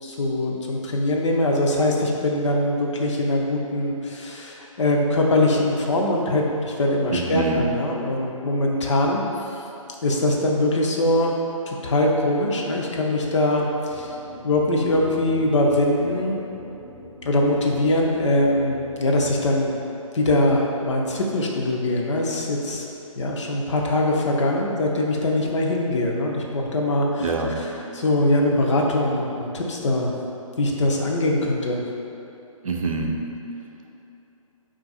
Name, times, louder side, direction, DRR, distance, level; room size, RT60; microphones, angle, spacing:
voice 1, 0.0-9.6 10.0-11.4 11.7-14.2 14.4-16.4 17.2-19.8 20.1-22.9 23.2-30.1 30.6-31.8, left 1 dB, 55° left, -1 dB, 0.6 m, -22 dB
voice 2, 7.1-7.6 27.2-27.6 32.6-33.2, right 4 dB, 75° right, 1 dB, 0.5 m, -25 dB
sound 1, 13.9-19.4, equal, 10° right, 0.6 m, -42 dB
3.9 x 2.5 x 3.9 m, 2.9 s
figure-of-eight pair, 145°, 18 cm